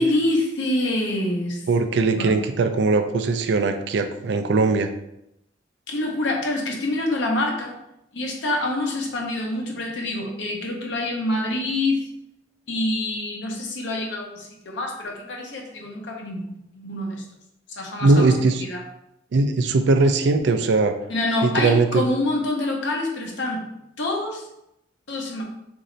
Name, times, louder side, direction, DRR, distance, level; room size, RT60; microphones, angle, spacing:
voice 1, 0.0-1.6 2.2-2.3 5.9-7.7 8.1-12.1 12.7-17.2 17.7-18.8 21.1-23.7 24.0-24.4 25.1-25.4, left 1 dB, 80° left, 0 dB, 0.8 m, -26 dB
voice 2, 1.7-4.9 18.0-18.6 19.3-20.9 21.4-22.0, right 3 dB, 70° right, 8 dB, 0.4 m, -20 dB
3.1 x 2.7 x 3.8 m, 0.82 s
head